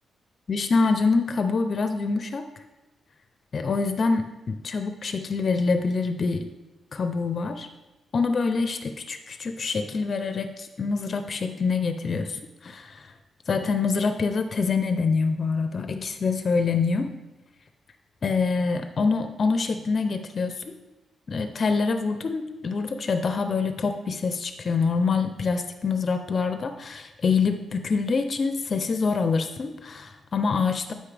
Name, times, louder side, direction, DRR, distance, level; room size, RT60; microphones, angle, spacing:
voice 1, 0.5-2.5 3.5-6.5 6.9-7.7 8.1-13.1 13.5-17.2 18.2-20.7 21.3-30.9, left 4 dB, 40° left, 8 dB, 0.5 m, -25 dB
12.0 x 5.4 x 3.3 m, 1.1 s
wide cardioid pair, 155°, 0 cm